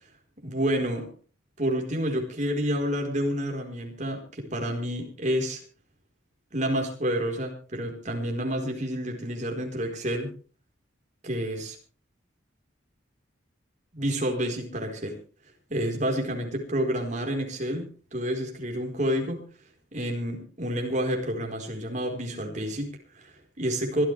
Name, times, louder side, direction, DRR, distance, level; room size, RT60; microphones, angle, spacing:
voice 1, 0.4-1.1 1.6-5.6 6.5-10.3 11.2-11.8 13.9-15.2 15.7-19.4 19.9-24.0, equal, 35° right, 2 dB, 4.4 m, -29 dB
24.5 x 13.5 x 3.4 m, 0.38 s
head